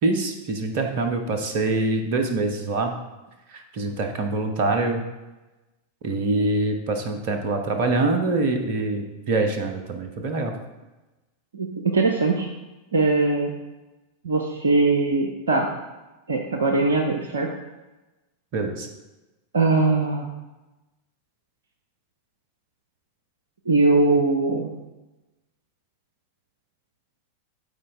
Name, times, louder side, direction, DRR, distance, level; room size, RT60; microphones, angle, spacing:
voice 1, 0.0-3.0 3.5-5.0 6.0-10.5 18.5-18.9, right 2 dB, 45° right, 5 dB, 1.0 m, -24 dB
voice 2, 11.5-12.5 12.9-13.5 14.2-15.7 16.3-17.5 19.5-20.3 23.7-24.7, right 3 dB, 70° right, 3 dB, 0.7 m, -21 dB
12.5 x 4.4 x 3.6 m, 1.1 s
figure-of-eight pair, 90°, 0 cm